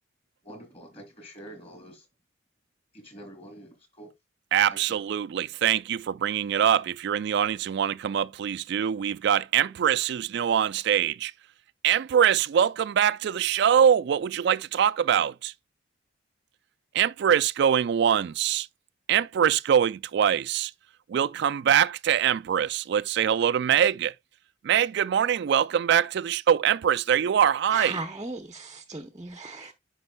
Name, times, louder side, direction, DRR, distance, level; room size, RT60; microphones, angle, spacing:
voice 1, 0.4-2.1 2.9-4.1 4.7-5.0, right 1 dB, 30° left, 2.6 m, -46 dB
voice 2, 4.5-11.3 11.8-15.5 16.9-18.7 19.1-20.7 21.1-24.1 24.6-28.0, right 9 dB, 60° right, 0.3 m, -23 dB
voice 3, 27.7-29.7, right 3 dB, 20° right, 0.6 m, -36 dB
9.6 x 5.4 x 2.2 m
head